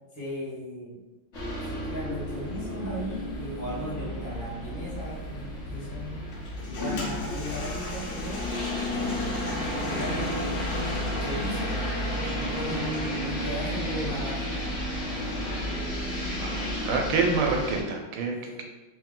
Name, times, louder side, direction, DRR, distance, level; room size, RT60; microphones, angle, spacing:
voice 1, 0.1-1.0 1.6-6.2 6.7-8.4 8.8-9.3 9.9-11.8 12.0-14.6 18.3-18.6, equal, 10° left, -9 dB, 0.9 m, -37 dB
sound 1, 1.3-17.8, left 1 dB, 45° left, 1.0 m, -32 dB
Toilet flush, 6.3-13.2, left 2 dB, 80° left, 1.7 m, -39 dB
voice 2, 16.4-18.3, right 4 dB, 85° right, 2 dB, 1.5 m, -27 dB
3.6 x 3.0 x 3.7 m, 1.1 s
omnidirectional pair, 2.3 m